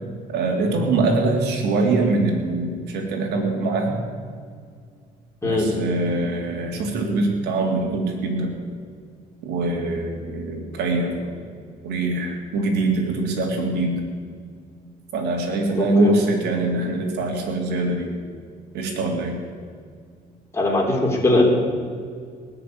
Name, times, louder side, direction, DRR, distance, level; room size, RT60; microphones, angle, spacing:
voice 1, 0.3-4.0 5.4-8.5 9.4-11.4 11.8-14.0 15.1-18.1 18.7-19.4, right 2 dB, 75° right, 1 dB, 3.2 m, -23 dB
voice 2, 15.7-16.1 20.5-21.4, left 2 dB, 15° left, -1 dB, 3.7 m, -20 dB
19.5 x 6.9 x 9.5 m, 2.1 s
cardioid pair, 110°, 17 cm